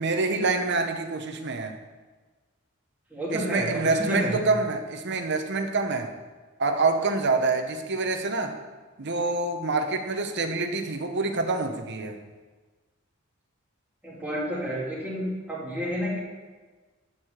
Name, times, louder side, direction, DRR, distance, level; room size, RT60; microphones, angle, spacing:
voice 1, 0.0-1.7 3.3-6.1 6.6-8.5 9.0-12.2, right 3 dB, 55° right, 6 dB, 1.0 m, -26 dB
voice 2, 3.1-4.4 14.0-16.2, equal, 10° right, -6 dB, 2.6 m, -30 dB
13.0 x 4.8 x 6.7 m, 1.3 s
head